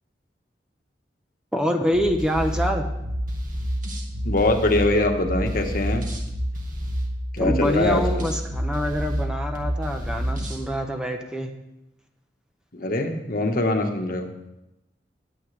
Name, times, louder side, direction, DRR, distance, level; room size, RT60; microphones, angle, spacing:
voice 1, 1.5-2.9 7.4-11.5, equal, 5° right, 4 dB, 0.9 m, -25 dB
sound 1, 1.9-10.6, equal, 50° right, 2.0 m, -28 dB
voice 2, 4.2-6.0 7.3-8.2 12.7-14.3, left 2 dB, 55° left, 4 dB, 1.3 m, -23 dB
19.0 x 8.6 x 3.3 m, 0.90 s
head